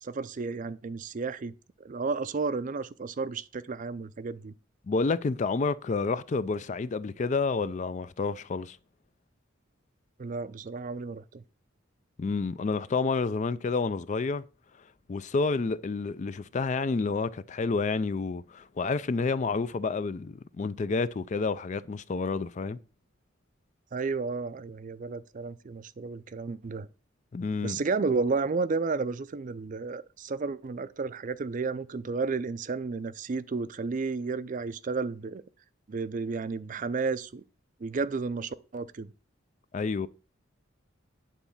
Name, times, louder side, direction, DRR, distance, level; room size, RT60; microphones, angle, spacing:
voice 1, 0.0-1.5 1.8-4.5 10.2-11.4 23.9-26.9 27.6-35.4 35.9-37.4 37.8-39.1, right 4 dB, 40° right, 0.4 m, -32 dB
voice 2, 4.9-8.8 12.2-14.4 15.1-22.8 27.3-27.8 39.7-40.1, left 4 dB, 35° left, 0.4 m, -29 dB
9.2 x 4.0 x 7.1 m
head